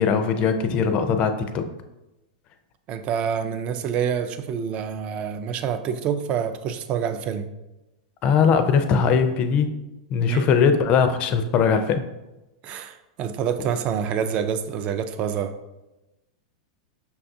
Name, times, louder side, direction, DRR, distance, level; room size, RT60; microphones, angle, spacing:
voice 1, 0.0-1.7 8.2-9.7 10.1-12.1, left 6 dB, 35° left, 8 dB, 0.4 m, -20 dB
voice 2, 2.9-7.5 10.3-10.5 12.6-15.5, right 8 dB, 35° right, 9 dB, 0.3 m, -27 dB
5.5 x 2.3 x 2.6 m, 0.98 s
supercardioid pair, 135°, 4 cm